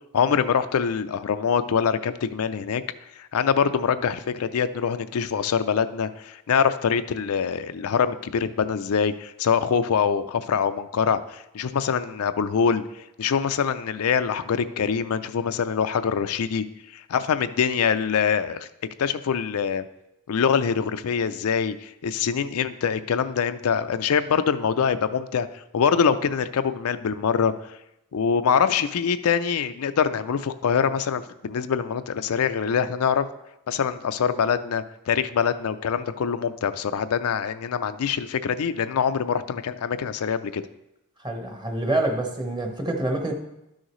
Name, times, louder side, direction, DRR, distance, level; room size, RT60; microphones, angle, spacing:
voice 1, 0.1-2.8 3.2-16.6 16.9-18.7 19.0-19.8 20.3-27.7 28.1-33.3 33.7-40.6, left 7 dB, 70° left, 11 dB, 0.4 m, -24 dB
voice 2, 41.2-43.3, right 1 dB, 20° right, 4 dB, 1.0 m, -26 dB
12.0 x 6.4 x 3.1 m, 0.86 s
head